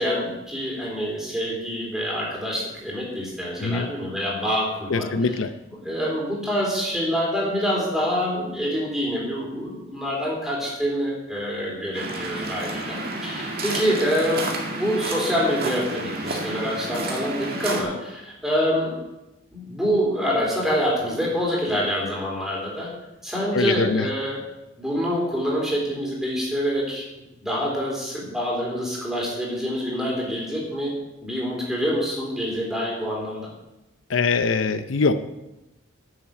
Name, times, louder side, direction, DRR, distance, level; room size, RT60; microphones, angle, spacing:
voice 1, 0.0-5.4 5.8-13.0 13.2-18.9 19.5-22.9 23.2-24.4 24.8-27.0 27.4-30.9 31.2-33.5, equal, ahead, -4 dB, 3.8 m, -26 dB
voice 2, 4.9-5.5 23.5-24.1 34.1-35.1, left 4 dB, 75° left, 10 dB, 0.6 m, -22 dB
Waves surf, 11.9-17.8, right 2 dB, 50° right, 2.1 m, -30 dB
10.5 x 7.2 x 7.7 m, 0.97 s
head